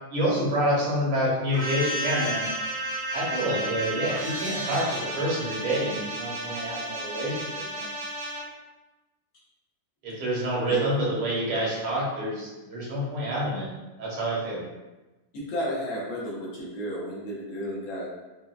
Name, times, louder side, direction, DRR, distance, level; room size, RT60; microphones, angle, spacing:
voice 1, 0.1-2.5 3.1-7.9 10.0-13.7 14.0-14.6, right 1 dB, 75° right, -5 dB, 1.9 m, -27 dB
sound 1, 1.5-8.4, right 1 dB, 50° right, 0.9 m, -32 dB
voice 2, 10.7-11.0 15.3-18.1, equal, 70° left, -5 dB, 1.6 m, -32 dB
4.8 x 2.3 x 2.3 m, 1.1 s
omnidirectional pair, 2.3 m